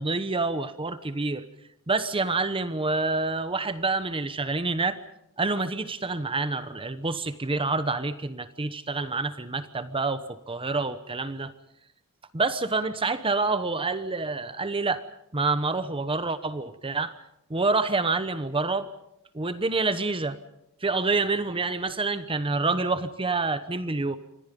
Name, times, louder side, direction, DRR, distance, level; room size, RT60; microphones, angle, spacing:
voice 1, 0.0-1.4 1.9-5.0 5.4-11.5 12.3-15.0 15.3-17.1 17.5-18.9 19.3-20.4 20.8-24.2, right 3 dB, 25° right, 12 dB, 1.0 m, -27 dB
28.0 x 25.0 x 5.3 m, 0.81 s
head